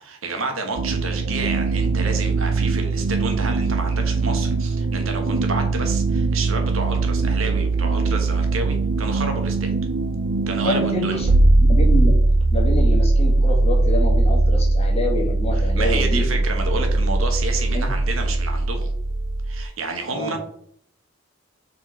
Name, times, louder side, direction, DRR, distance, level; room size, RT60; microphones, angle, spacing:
voice 1, 0.0-9.7 10.5-11.2 15.7-18.9 19.5-20.4, right 3 dB, 80° right, 4 dB, 1.3 m, -30 dB
sound 1, 0.8-19.6, right 2 dB, 65° right, 0.5 m, -20 dB
voice 2, 10.6-12.2 12.5-16.4 17.7-17.9 20.1-20.4, left 1 dB, 30° left, 0 dB, 1.7 m, -27 dB
5.5 x 4.4 x 4.4 m, 0.64 s
head